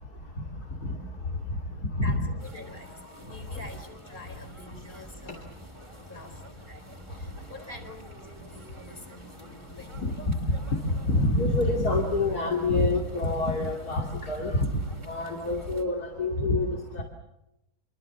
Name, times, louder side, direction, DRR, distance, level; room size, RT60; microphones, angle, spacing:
voice 1, 0.0-2.1 3.2-3.6 4.3-4.4 4.8-6.4 6.8-7.5 8.4-17.0, left 2 dB, 85° left, 2 dB, 3.4 m, -29 dB
voice 2, 1.7-5.5 6.1-10.2, left 2 dB, 35° left, 6 dB, 4.5 m, -47 dB
sound 1, 2.4-15.8, right 1 dB, 20° right, 2.5 m, -49 dB
27.5 x 25.0 x 7.1 m, 0.88 s
omnidirectional pair, 1.6 m